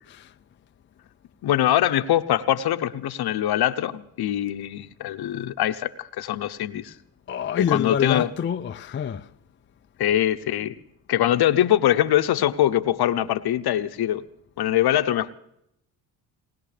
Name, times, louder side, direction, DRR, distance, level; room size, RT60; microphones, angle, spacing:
voice 1, 1.4-6.9 7.6-8.3 10.0-10.8 11.1-14.2 14.6-15.3, left 12 dB, 55° left, 0.9 m, -23 dB
voice 2, 7.3-9.3, left 8 dB, 25° left, 0.5 m, -26 dB
20.0 x 19.5 x 3.3 m
supercardioid pair, 60°, 46 cm